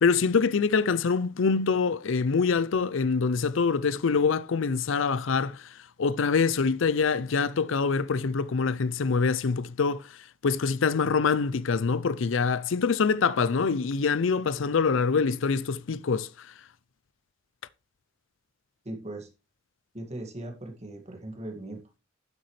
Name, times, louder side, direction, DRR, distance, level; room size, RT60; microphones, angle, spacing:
voice 1, 0.0-16.5, left 5 dB, 70° left, 0.5 m, -25 dB
voice 2, 18.8-19.3 19.9-22.0, right 1 dB, 35° right, 2.0 m, -39 dB
9.7 x 8.0 x 3.3 m
head